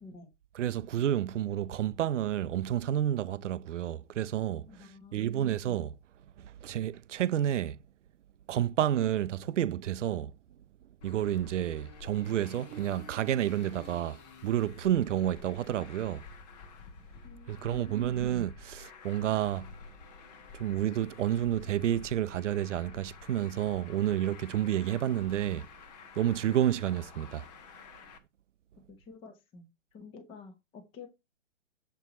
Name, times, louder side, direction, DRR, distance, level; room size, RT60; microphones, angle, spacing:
voice 1, 0.0-0.3 4.7-5.6 17.2-18.3 28.9-31.1, left 5 dB, 15° left, 1.0 m, -50 dB
voice 2, 0.6-4.7 5.1-5.9 6.4-7.8 8.5-10.3 11.0-16.2 17.5-19.7 20.6-25.7 26.2-27.4, right 11 dB, 70° right, 0.6 m, -30 dB
Traffic noise roadway noise, 11.0-28.2, left 5 dB, 35° left, 1.1 m, -50 dB
7.3 x 4.6 x 4.1 m
hypercardioid pair, 150°, 38 cm